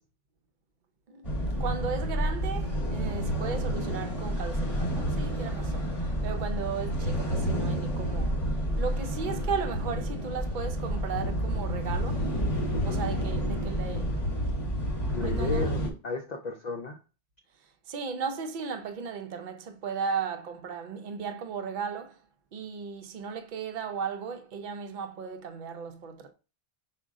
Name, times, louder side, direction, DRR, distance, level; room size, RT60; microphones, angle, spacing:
voice 1, 1.1-8.4 8.8-12.3 12.9-14.1 15.2-15.7 17.9-22.2 22.5-26.3, right 6 dB, 55° right, 0.6 m, -36 dB
sound 1, 1.2-15.9, equal, 30° left, 1.0 m, -29 dB
voice 2, 12.7-13.0 15.1-17.0, left 3 dB, 50° left, 0.5 m, -34 dB
5.0 x 2.2 x 3.5 m
omnidirectional pair, 1.2 m